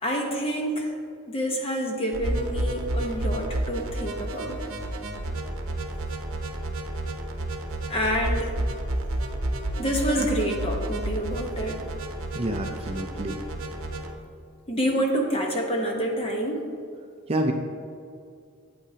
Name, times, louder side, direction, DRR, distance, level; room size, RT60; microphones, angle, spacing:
voice 1, 0.0-0.9 1.3-4.6 7.9-8.5 9.8-11.8 14.7-16.6, equal, 25° left, 1 dB, 1.1 m, -27 dB
sound 1, 2.1-14.1, right 1 dB, 70° right, 0.9 m, -31 dB
voice 2, 12.3-13.4 17.3-17.5, right 1 dB, 25° right, 3 dB, 0.5 m, -28 dB
11.5 x 8.6 x 2.9 m, 2.3 s
head